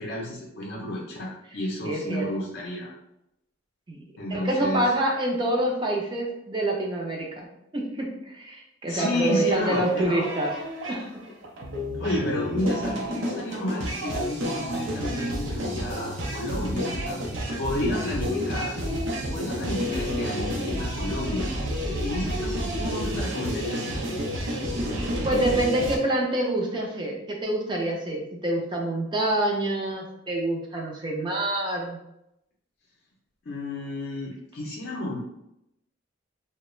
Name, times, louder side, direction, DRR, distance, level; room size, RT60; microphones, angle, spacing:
voice 1, 0.0-2.9 4.2-4.8 8.9-10.2 12.0-17.2 17.6-19.0 19.3-21.5 22.0-24.0 33.5-35.2, left 1 dB, 60° left, -4 dB, 0.5 m, -31 dB
voice 2, 1.8-2.3 3.9-4.0 4.3-7.5 7.7-10.5 10.9-11.1 25.2-32.0, right 1 dB, 25° right, -1 dB, 0.4 m, -26 dB
sound 1, 8.9-26.0, equal, 70° right, 0.6 m, -30 dB
2.3 x 2.0 x 3.0 m, 0.83 s
head